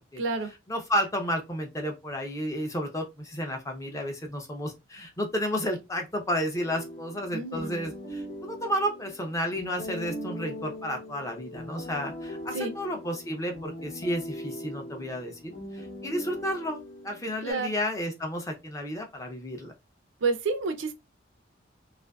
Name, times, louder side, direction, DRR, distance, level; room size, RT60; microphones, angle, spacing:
voice 1, 0.2-0.5 7.3-7.8 12.5-12.7 17.4-17.7 20.2-20.9, right 4 dB, 75° right, 0.5 m, -29 dB
voice 2, 0.7-19.7, equal, 15° left, 0.4 m, -32 dB
sound 1, 6.5-17.5, equal, 50° left, 0.8 m, -40 dB
2.5 x 2.5 x 2.2 m
head